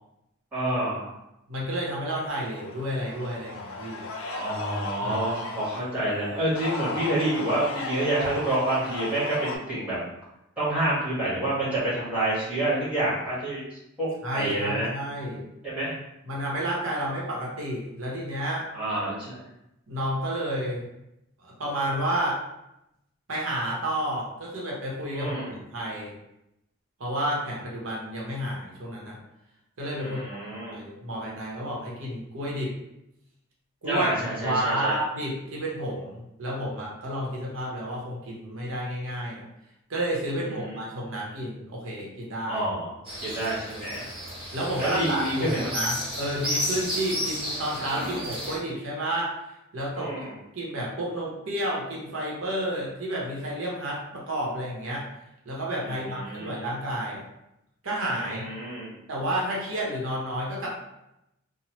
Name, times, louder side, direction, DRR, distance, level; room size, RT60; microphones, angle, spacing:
voice 1, 0.5-1.1 4.2-10.0 10.6-14.1 14.3-14.9 15.6-15.9 18.7-19.4 25.1-25.6 30.0-30.8 33.8-34.9 40.4-40.8 42.5-42.9 43.2-44.1 44.8-45.6 49.9-50.3 55.8-56.7 58.2-58.9, right 1 dB, 5° right, -10 dB, 1.3 m, -28 dB
voice 2, 1.5-4.0 5.0-5.3 14.2-15.4 16.2-18.6 19.9-20.9 21.4-22.4 23.3-26.1 27.0-29.2 29.8-30.2 30.7-32.7 33.8-34.1 34.4-39.4 39.9-42.7 44.5-49.3 49.7-50.3 50.5-55.0 55.4-57.3 57.8-58.5 59.1-60.7, right 1 dB, 70° right, -3 dB, 0.8 m, -31 dB
sound 1, 2.3-5.8 6.4-9.6, left 3 dB, 75° left, 0.4 m, -36 dB
sound 2, 43.0-48.6, equal, 25° right, 0.7 m, -32 dB
3.0 x 2.1 x 2.9 m, 0.86 s
head